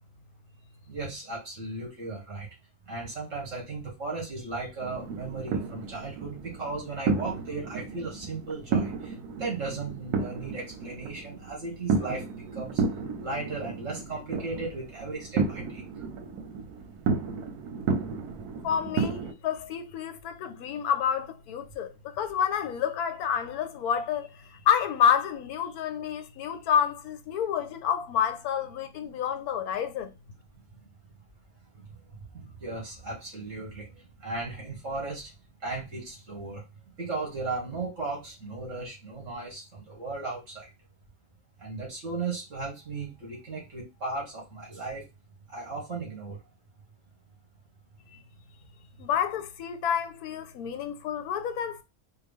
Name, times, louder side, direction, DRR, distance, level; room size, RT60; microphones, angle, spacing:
voice 1, 0.9-2.5 2.9-9.1 9.4-12.2 12.5-12.8 13.2-15.8 31.8-31.9 32.3-35.3 35.6-36.6 37.0-40.7 41.6-45.0 45.5-46.4, right 3 dB, 55° right, 2.2 m, -36 dB
sound 1, 4.8-19.3, right 5 dB, 90° right, 1.2 m, -32 dB
voice 2, 18.6-30.1 48.1-48.2 49.0-51.8, left 8 dB, 85° left, 1.1 m, -29 dB
4.5 x 2.2 x 3.5 m
omnidirectional pair, 1.6 m